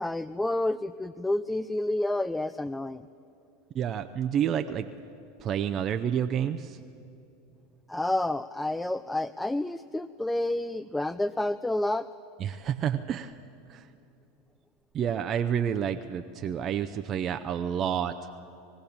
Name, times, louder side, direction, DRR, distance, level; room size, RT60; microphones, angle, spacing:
voice 1, 0.0-3.1 7.9-12.1, left 1 dB, 5° left, 15 dB, 0.4 m, -29 dB
voice 2, 3.7-4.9 5.4-6.8 12.4-13.3 13.7-13.9 14.9-18.2, right 9 dB, 40° right, 8 dB, 0.7 m, -29 dB
21.5 x 15.5 x 8.7 m, 2.8 s
hypercardioid pair, 95°, 0 cm